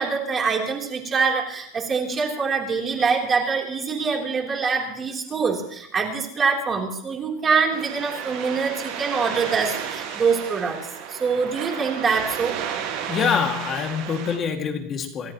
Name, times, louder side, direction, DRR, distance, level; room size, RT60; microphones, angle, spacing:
voice 1, 0.0-10.8 11.1-12.5, right 5 dB, 20° right, 0 dB, 3.4 m, -24 dB
sound 1, 7.7-14.4, right 8 dB, 55° right, 7.1 m, -32 dB
voice 2, 13.1-15.3, left 6 dB, 25° left, 4 dB, 2.2 m, -25 dB
27.0 x 14.0 x 3.1 m, 0.72 s
supercardioid pair, 155°, 0 cm